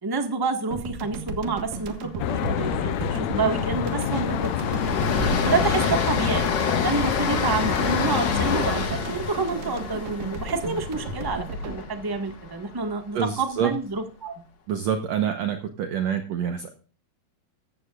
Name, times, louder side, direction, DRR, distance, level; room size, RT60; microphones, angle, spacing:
voice 1, 0.0-4.8 5.4-6.5 6.8-14.3, right 4 dB, 30° right, 5 dB, 0.3 m, -28 dB
sound 1, 0.7-13.2, right 3 dB, 80° right, 3.1 m, -35 dB
Train, 1.6-1.9 2.1-2.3 2.7-12.8, left 4 dB, 45° left, 1.7 m, -29 dB
Traffic noise roadway noise, 2.2-8.6, left 11 dB, 70° left, 1.8 m, -27 dB
voice 2, 13.1-13.7 14.7-16.7, right 8 dB, 65° right, 6 dB, 2.0 m, -26 dB
14.5 x 14.5 x 2.5 m, 0.38 s
omnidirectional pair, 3.8 m